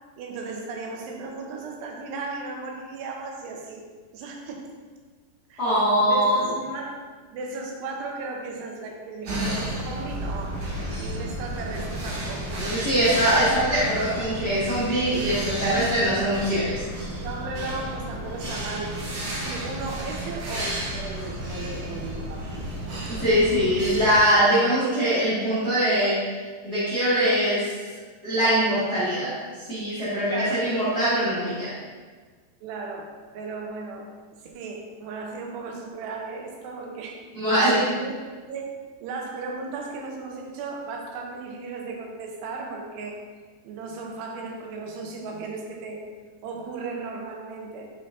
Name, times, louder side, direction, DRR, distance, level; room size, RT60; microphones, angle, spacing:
voice 1, 0.2-3.9 4.1-4.7 5.5-5.6 6.0-7.0 7.3-10.6 11.0-12.6 17.2-19.0 19.3-23.3 30.3-30.7 32.6-34.1 34.4-37.4 37.7-38.1 38.5-38.7 39.0-43.2 43.6-46.0 46.4-47.9, right 3 dB, 80° right, 1 dB, 2.8 m, -36 dB
voice 2, 5.6-6.4 12.6-16.8 23.1-26.2 26.6-27.7 28.2-31.7 37.3-37.9, equal, 55° left, -12 dB, 1.0 m, -22 dB
sound 1, 9.3-24.2, equal, 60° right, 1.7 m, -32 dB
6.7 x 5.4 x 2.7 m, 1.5 s
omnidirectional pair, 4.9 m